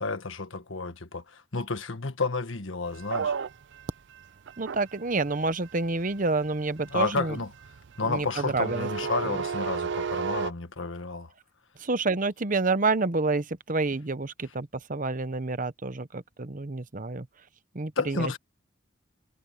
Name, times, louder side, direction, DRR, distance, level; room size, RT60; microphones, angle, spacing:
voice 1, 0.0-3.3 6.9-7.5 8.0-11.3 18.0-18.4, left 3 dB, 75° left, 1.6 m, -31 dB
sound 1, 3.0-10.5, right 6 dB, 60° right, 0.4 m, -34 dB
voice 2, 4.6-7.3 8.0-8.9 9.2-9.4 11.8-17.3 17.7-18.3, right 3 dB, 40° right, 0.9 m, -28 dB
head